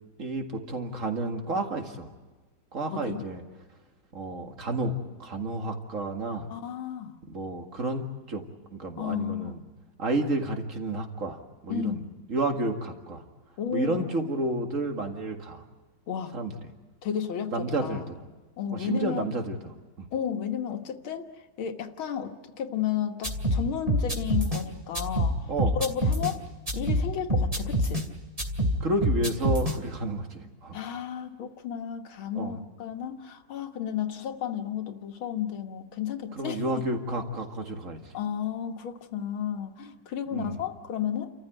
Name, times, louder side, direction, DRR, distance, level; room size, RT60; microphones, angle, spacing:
voice 1, 0.2-2.1 2.7-3.4 4.1-6.5 7.3-8.4 8.7-9.6 10.0-12.0 12.3-13.2 13.7-15.6 16.3-16.5 17.5-18.2 18.7-19.6 20.0-20.1 25.5-25.8 28.8-30.8 32.4-32.6 36.4-38.0 40.3-40.6, right 2 dB, 40° right, 4 dB, 2.2 m, -31 dB
voice 2, 2.9-3.3 6.5-7.2 9.0-9.6 11.7-12.1 13.6-14.1 16.1-16.3 17.0-18.1 18.6-19.3 20.1-21.3 21.6-25.4 25.7-26.4 26.7-28.1 30.7-36.6 38.1-41.3, left 9 dB, 85° left, 6 dB, 2.1 m, -33 dB
sound 1, 23.2-24.6 24.9-26.3 26.7-28.1 28.4-29.8, equal, 15° right, 2.5 m, -26 dB
30.0 x 14.5 x 9.1 m, 1.3 s
omnidirectional pair, 2.2 m